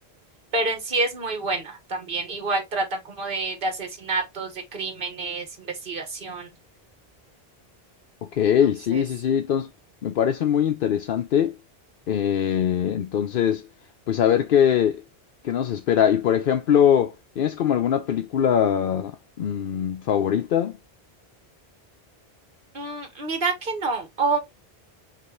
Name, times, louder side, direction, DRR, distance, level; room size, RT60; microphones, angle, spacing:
voice 1, 0.5-6.5 8.9-9.0 22.7-24.4, right 3 dB, 60° right, 1.6 m, -28 dB
voice 2, 8.3-9.7 10.0-11.5 12.1-13.7 14.1-15.0 15.4-20.8, left 9 dB, 65° left, 0.7 m, -22 dB
5.4 x 3.0 x 3.0 m
omnidirectional pair, 1.0 m